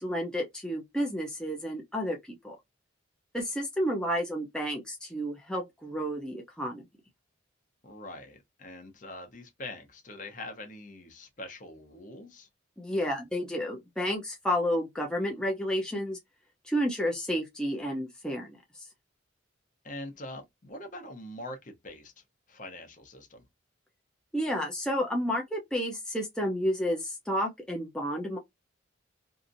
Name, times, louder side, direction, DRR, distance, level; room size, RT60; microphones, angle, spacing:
voice 1, 0.0-2.2 2.4-2.6 3.3-6.9 12.8-16.2 16.6-18.6 24.3-28.4, equal, 5° left, 0.5 m, -31 dB
voice 2, 7.8-12.5 19.8-23.5, left 1 dB, 40° left, 0.8 m, -43 dB
2.8 x 2.5 x 2.5 m
head